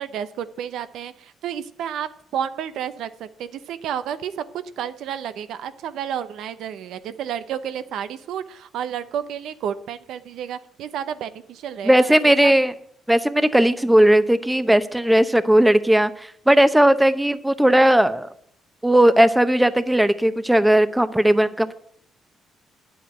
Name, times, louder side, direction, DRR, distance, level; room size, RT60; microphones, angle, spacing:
voice 1, 0.0-12.5, right 9 dB, 80° right, 12 dB, 0.7 m, -31 dB
voice 2, 11.8-12.7 13.1-18.3 18.8-21.7, right 1 dB, 5° right, 13 dB, 0.8 m, -17 dB
9.6 x 7.9 x 8.8 m, 0.67 s
cardioid pair, 90°, 0 cm